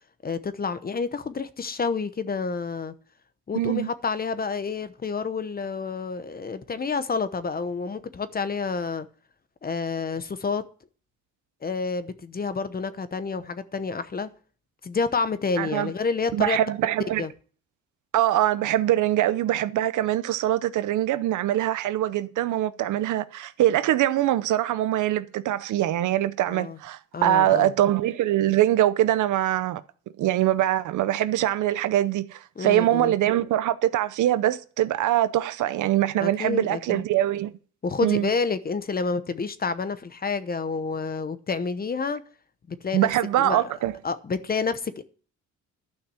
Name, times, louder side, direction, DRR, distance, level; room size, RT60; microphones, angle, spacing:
voice 1, 0.2-2.9 3.5-9.1 9.6-10.6 11.6-14.3 14.8-16.6 17.2-17.3 26.5-26.8 27.1-27.7 32.6-33.2 36.2-37.0 37.8-42.2 42.7-43.1 43.4-43.7 44.0-45.0, left 4 dB, 30° left, 0.9 m, -29 dB
voice 2, 3.5-3.9 15.6-15.9 16.3-17.2 18.1-29.8 30.2-37.5 38.0-38.3 42.9-43.9, right 13 dB, 80° right, 0.8 m, -23 dB
11.5 x 5.9 x 7.7 m
cardioid pair, 90°, 30 cm